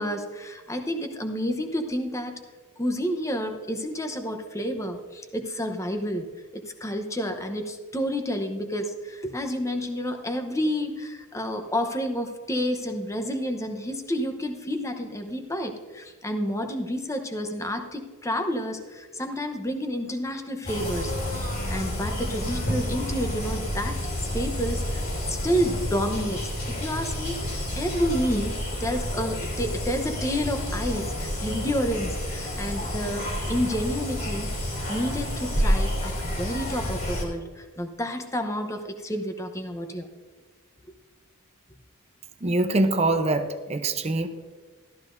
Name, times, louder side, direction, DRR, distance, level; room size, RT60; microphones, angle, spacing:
voice 1, 0.0-2.4 2.8-6.3 6.8-24.0 24.3-26.5 26.8-28.5 28.8-34.5 34.9-40.1, equal, 15° left, 6 dB, 0.9 m, -30 dB
sound 1, 20.6-37.2, equal, 50° left, 3.2 m, -29 dB
voice 2, 42.4-44.3, right 2 dB, 30° right, 8 dB, 0.7 m, -24 dB
14.0 x 12.5 x 2.6 m, 1.4 s
head